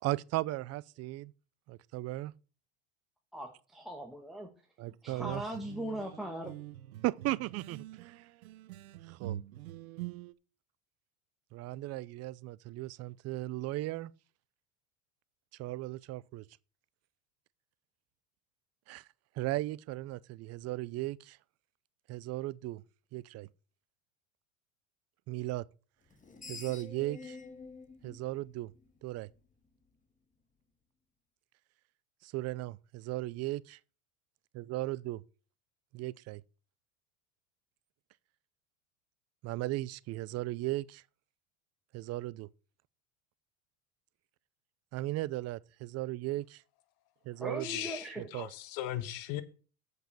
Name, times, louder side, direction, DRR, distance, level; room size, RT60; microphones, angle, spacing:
voice 1, 0.0-1.3 1.7-2.3 4.8-5.4 7.0-8.3 9.0-9.4 11.5-14.1 15.6-16.5 18.9-19.0 19.4-21.4 22.1-22.8 23.1-23.5 25.3-25.7 26.5-27.4 28.0-28.7 29.0-29.3 32.2-33.8 34.5-35.2 35.9-36.4 39.4-41.0 41.9-42.5 44.9-46.6 47.3-47.8 48.2-48.5, right 17 dB, 40° right, 0.5 m, -36 dB
voice 2, 3.3-4.5 5.0-6.5 47.4-48.3, right 1 dB, ahead, 1.4 m, -39 dB
sound 1, 5.1-10.3, right 14 dB, 90° right, 0.6 m, -45 dB
Screech, 26.1-29.3, left 4 dB, 20° left, 1.6 m, -49 dB
voice 3, 47.6-49.4, left 13 dB, 55° left, 1.3 m, -38 dB
7.8 x 5.3 x 6.8 m
hypercardioid pair, 95°, 41 cm